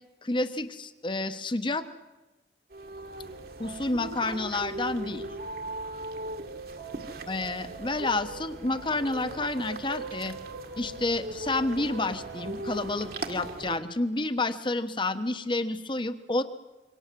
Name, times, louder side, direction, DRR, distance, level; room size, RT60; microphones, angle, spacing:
voice 1, 0.2-1.9 3.6-5.3 7.3-10.4 10.8-16.4, left 2 dB, 25° left, 10 dB, 1.2 m, -29 dB
sound 1, 2.7-13.8, right 2 dB, 55° right, 2.0 m, -38 dB
27.0 x 24.5 x 7.6 m, 1.1 s
head